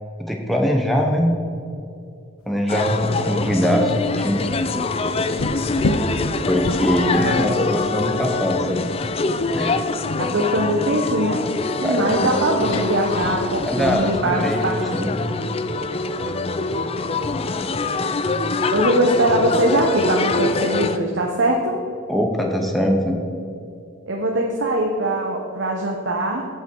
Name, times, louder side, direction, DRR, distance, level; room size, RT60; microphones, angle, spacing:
voice 1, 0.2-1.3 2.5-4.4 6.5-8.9 9.5-9.8 11.8-12.3 13.7-14.7 14.9-15.2 22.1-23.2, equal, ahead, 0 dB, 0.9 m, -22 dB
sound 1, 2.6-2.7 3.0-3.1 3.5-10.5 10.9-11.2 11.5-11.7 12.0-12.3 12.7-13.6 13.8-17.5, left 2 dB, 80° left, 0.7 m, -31 dB
sound 2, 2.7-21.0, left 3 dB, 30° left, 0.4 m, -24 dB
voice 2, 10.2-11.4 11.8-15.1 18.7-21.8 24.1-26.5, right 1 dB, 55° right, 0 dB, 1.0 m, -21 dB
16.5 x 5.8 x 4.6 m, 2.6 s
head